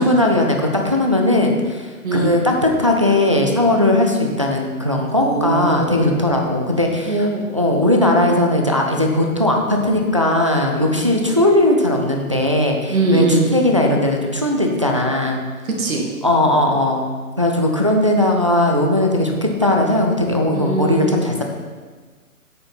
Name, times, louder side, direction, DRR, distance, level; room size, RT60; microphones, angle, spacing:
voice 1, 0.0-7.2 7.5-15.4 16.2-21.4, left 1 dB, 25° right, 1 dB, 0.3 m, -18 dB
voice 2, 5.2-6.2 7.1-7.5 11.1-11.3 12.9-13.5 15.6-16.1 20.5-21.1, right 2 dB, 65° right, 0 dB, 2.1 m, -21 dB
8.6 x 6.5 x 4.2 m, 1.5 s
hypercardioid pair, 135°, 45 cm